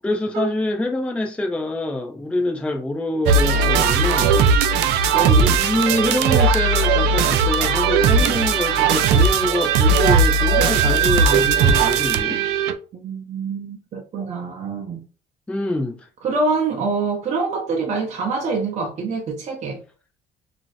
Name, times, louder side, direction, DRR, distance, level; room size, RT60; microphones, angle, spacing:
voice 1, 0.0-4.5 5.1-12.4 15.5-16.1, left 2 dB, 5° left, 0.4 m, -25 dB
sound 1, 3.3-12.7, right 5 dB, 90° right, 0.4 m, -17 dB
voice 2, 12.9-15.0 16.2-19.8, right 4 dB, 45° right, 0.6 m, -25 dB
2.5 x 2.0 x 3.9 m
cardioid pair, 110°, 17 cm